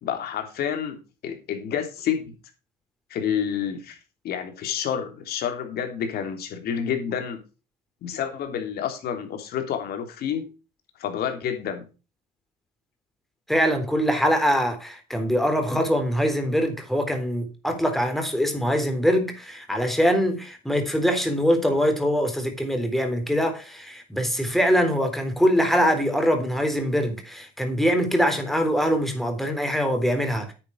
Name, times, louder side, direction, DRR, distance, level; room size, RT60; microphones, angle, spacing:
voice 1, 0.0-2.3 3.1-4.0 4.2-7.4 8.0-10.5 11.0-11.9, left 8 dB, 70° left, 3.4 m, -29 dB
voice 2, 13.5-30.5, equal, ahead, 3.7 m, -23 dB
9.8 x 8.9 x 4.7 m
cardioid pair, 110°, 17 cm